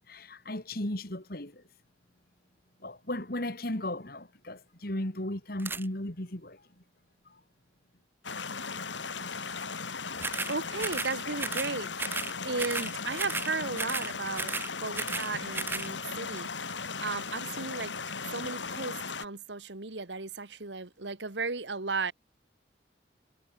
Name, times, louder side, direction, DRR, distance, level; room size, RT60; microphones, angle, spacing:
voice 1, 0.1-1.6 2.8-6.6, left 1 dB, 55° left, 3.1 m, -35 dB
sound 1, 5.6-5.8 10.2-10.5 10.8-11.1 11.4-11.7 12.0-12.3 12.6-12.9 13.2-13.5 13.8-14.1 14.3-15.3 15.5-15.9, right 3 dB, 10° right, 0.5 m, -34 dB
sound 2, 8.2-19.3, left 5 dB, 90° left, 4.1 m, -37 dB
voice 2, 10.5-12.2 12.4-14.5 14.8-16.5 17.0-17.9 18.3-22.1, right 3 dB, 75° right, 1.9 m, -35 dB
head